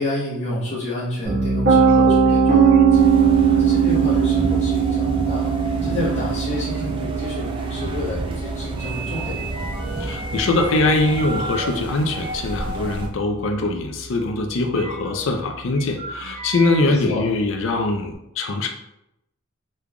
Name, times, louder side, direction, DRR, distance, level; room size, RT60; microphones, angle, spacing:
voice 1, 0.0-3.0 3.5-5.5 5.8-9.4 16.8-17.3, left 1 dB, 30° left, -9 dB, 0.9 m, -29 dB
Piano, 1.2-13.2, right 6 dB, 50° right, 1.4 m, -20 dB
sound 1, 1.8-1.9 2.2-2.3 2.6-3.2 3.7-3.9 4.4-4.5 6.0-6.1 6.5-6.9 7.3-7.4 8.8-11.7 12.1-12.4 13.2-13.3 13.5-13.6 14.7-15.2 15.7-16.8, right 3 dB, 85° right, 1.0 m, -35 dB
sound 2, 2.9-13.1, right 1 dB, 25° right, 0.3 m, -31 dB
voice 2, 10.0-18.7, left 2 dB, 65° left, 3 dB, 0.4 m, -22 dB
3.7 x 3.2 x 2.3 m, 0.84 s
head